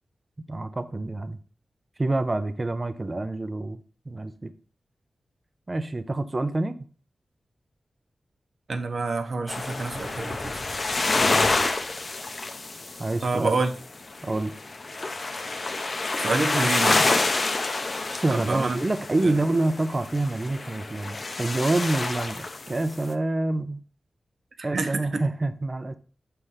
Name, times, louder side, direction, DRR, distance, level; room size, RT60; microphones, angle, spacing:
voice 1, 0.5-1.4 2.0-4.5 5.7-6.8 11.1-11.7 13.0-13.6 14.2-14.5 18.1-23.8 24.6-26.0, right 2 dB, 30° right, 0.5 m, -27 dB
voice 2, 8.7-10.5 13.2-13.7 16.2-17.3 18.3-18.8 19.2-19.4 24.7-25.2, right 3 dB, 60° right, 0.8 m, -27 dB
sound 1, 9.5-13.8 14.1-23.1, left 3 dB, 45° left, 0.6 m, -28 dB
6.3 x 3.3 x 5.5 m
wide cardioid pair, 100°, 0 cm